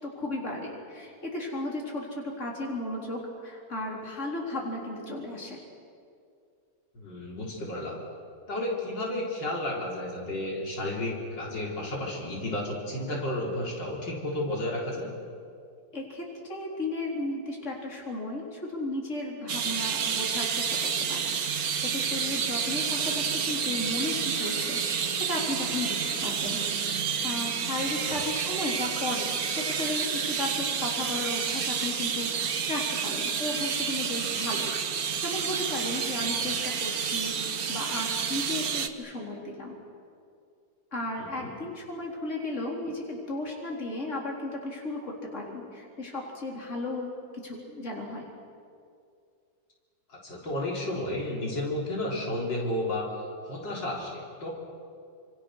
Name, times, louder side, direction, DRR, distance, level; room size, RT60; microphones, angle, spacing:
voice 1, 0.0-5.6 15.9-26.6 27.2-34.7 35.2-39.8 40.9-47.1 47.4-48.3, left 2 dB, 40° left, -1 dB, 4.3 m, -35 dB
voice 2, 6.9-8.0 8.5-15.1 27.8-28.3 34.5-34.7 36.2-36.6 41.2-41.5 50.1-53.1 53.4-54.5, left 1 dB, 85° left, -2 dB, 4.6 m, -32 dB
sound 1, 19.5-38.9, right 6 dB, 55° right, 1.6 m, -29 dB
28.0 x 26.5 x 6.5 m, 2.4 s
omnidirectional pair, 1.9 m